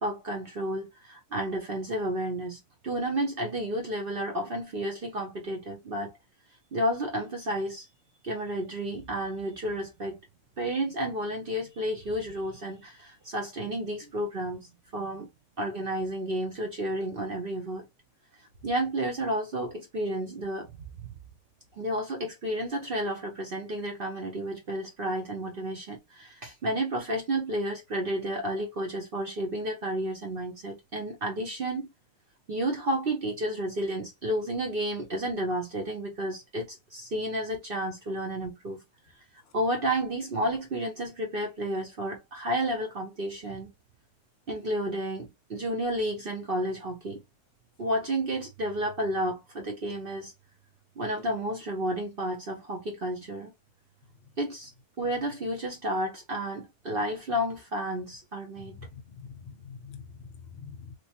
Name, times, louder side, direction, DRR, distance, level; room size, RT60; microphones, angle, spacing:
voice 1, 0.0-6.2 6.7-7.9 8.2-10.2 10.6-14.6 14.9-15.3 15.6-17.9 18.6-20.7 21.0-21.1 21.8-31.9 32.5-38.8 39.5-43.7 44.5-47.2 47.8-50.3 51.0-53.5 54.4-54.7 55.0-58.8, right 1 dB, 50° right, 0.7 m, -31 dB
voice 2, 58.6-60.9, left 6 dB, 50° left, 0.7 m, -45 dB
3.0 x 3.0 x 2.8 m
omnidirectional pair, 1.7 m